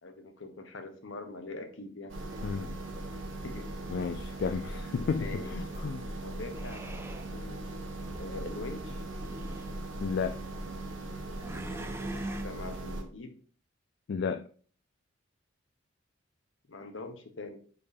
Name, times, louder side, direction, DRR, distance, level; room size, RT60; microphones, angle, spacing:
voice 1, 0.0-2.2 3.4-3.7 5.2-5.5 6.2-6.8 7.3-7.8 8.2-9.0 12.2-13.3 16.7-17.6, left 2 dB, 75° left, 1.0 m, -43 dB
sound 1, 2.1-13.0, right 1 dB, 85° right, 1.4 m, -39 dB
sound 2, 2.3-3.1 6.5-7.3 8.0-8.4 9.1-9.8 11.4-12.4, right 1 dB, 15° right, 0.4 m, -43 dB
voice 2, 2.4-2.8 3.9-6.1 10.0-10.4 14.1-14.5, left 5 dB, 55° left, 0.3 m, -33 dB
8.3 x 4.4 x 2.7 m
head